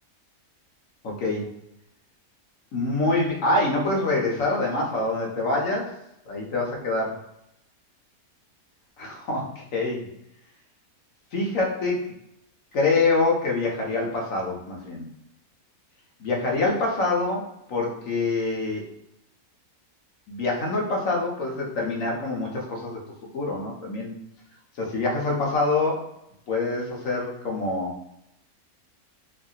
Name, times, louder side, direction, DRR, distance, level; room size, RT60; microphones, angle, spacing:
voice 1, 1.0-1.5 2.7-5.9 6.3-7.2 9.0-10.1 11.3-12.0 12.7-15.1 16.2-18.8 20.3-23.0 23.3-24.1 24.7-26.1 26.5-27.9, left 2 dB, 65° left, -2 dB, 1.2 m, -25 dB
3.0 x 2.6 x 2.3 m, 0.81 s
omnidirectional pair, 1.6 m